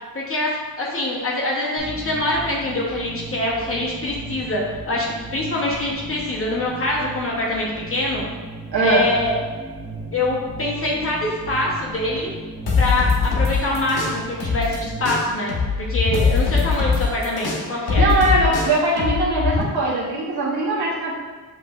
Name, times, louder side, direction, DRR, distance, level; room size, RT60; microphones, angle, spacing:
voice 1, 0.1-0.5 0.8-8.2 8.8-9.3 10.1-12.3 12.8-15.5 15.9-18.1, left 2 dB, 35° left, -4 dB, 0.9 m, -24 dB
sound 1, 1.8-15.3, right 2 dB, 20° right, 0.8 m, -36 dB
voice 2, 8.7-9.1 18.0-21.1, right 2 dB, 80° right, -6 dB, 1.0 m, -20 dB
sound 2, 12.7-14.8 15.0-19.6, left 4 dB, 85° left, 0.9 m, -21 dB
7.2 x 3.1 x 2.4 m, 1.4 s
wide cardioid pair, 105°, 37 cm